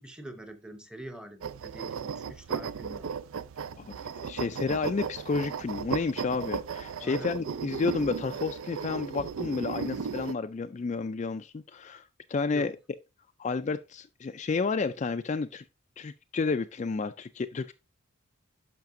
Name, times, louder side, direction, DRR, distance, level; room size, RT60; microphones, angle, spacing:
voice 1, 0.0-3.1 7.0-7.4 12.5-12.7, right 1 dB, 5° right, 0.8 m, -44 dB
sound 1, 1.4-10.3, right 6 dB, 75° right, 0.4 m, -35 dB
voice 2, 3.8-12.8 13.4-15.6 16.0-17.7, left 4 dB, 35° left, 0.3 m, -31 dB
10.5 x 5.8 x 2.6 m
head